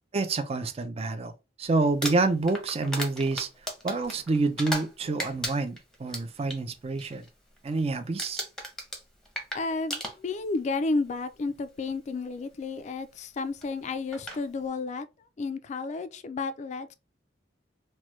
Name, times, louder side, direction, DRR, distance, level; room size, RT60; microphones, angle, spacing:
voice 1, 0.1-1.3 1.6-3.5 3.8-7.2 7.6-8.4, right 3 dB, 35° right, 0.4 m, -28 dB
Crumpling crinkling, 1.8-4.9 5.2-6.6 7.0-7.3 7.6-7.9 8.2-10.6 11.5-11.6 13.6-13.7 14.1-14.4, equal, 5° left, 0.7 m, -35 dB
voice 2, 9.5-15.1 15.4-16.9, left 3 dB, 40° left, 0.3 m, -32 dB
3.0 x 2.2 x 3.1 m
head